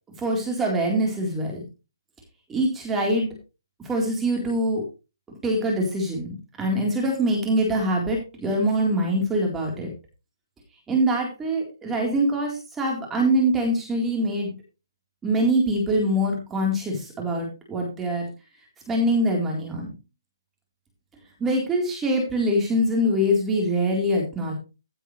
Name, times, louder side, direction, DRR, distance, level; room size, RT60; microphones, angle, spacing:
voice 1, 0.2-1.6 2.5-3.3 3.8-4.8 5.4-9.9 10.9-14.5 15.2-18.3 18.9-19.9 21.4-24.5, right 1 dB, 10° right, 0 dB, 4.1 m, -24 dB
16.0 x 9.0 x 3.3 m, 0.30 s
hypercardioid pair, 165°, 2 cm